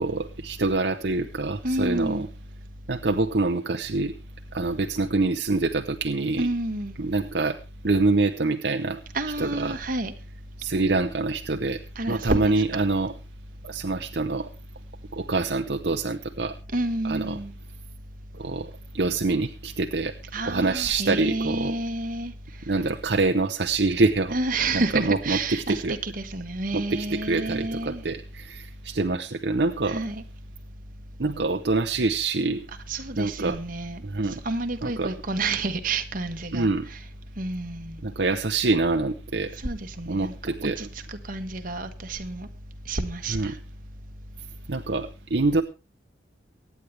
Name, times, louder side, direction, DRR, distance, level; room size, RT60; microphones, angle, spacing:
voice 1, 0.0-2.3 2.9-4.1 4.5-6.5 7.0-7.6 7.8-9.0 9.4-9.8 10.6-11.8 12.1-13.1 13.6-14.5 15.1-16.5 17.0-17.4 18.4-18.7 18.9-20.1 20.5-21.7 22.7-24.3 24.7-26.0 26.7-30.0 31.2-32.6 33.2-33.6 34.0-34.4 34.8-35.1 36.5-36.9 38.0-39.5 40.1-40.8 43.3-43.5 44.7-45.6, right 3 dB, 65° right, 0.8 m, -25 dB
voice 2, 1.6-2.3 6.4-7.0 9.1-10.1 11.9-12.8 16.7-17.5 20.3-22.3 24.3-28.0 29.9-30.2 32.9-34.0 34.4-37.0 37.4-38.0 39.6-40.3 40.6-42.5 42.9-43.5, right 2 dB, 50° right, 1.5 m, -29 dB
24.0 x 9.5 x 3.4 m
head